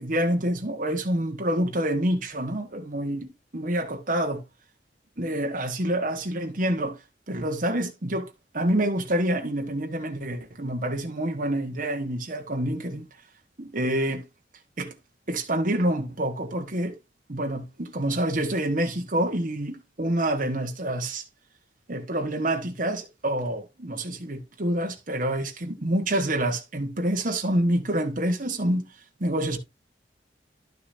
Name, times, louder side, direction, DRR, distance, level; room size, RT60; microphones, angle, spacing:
voice 1, 0.0-4.4 5.2-7.0 7.3-13.0 13.6-14.2 14.8-14.9 15.3-17.0 17.3-21.2 21.9-28.9 29.2-29.6, right 1 dB, 50° right, 1.3 m, -27 dB
11.5 x 6.7 x 2.7 m
head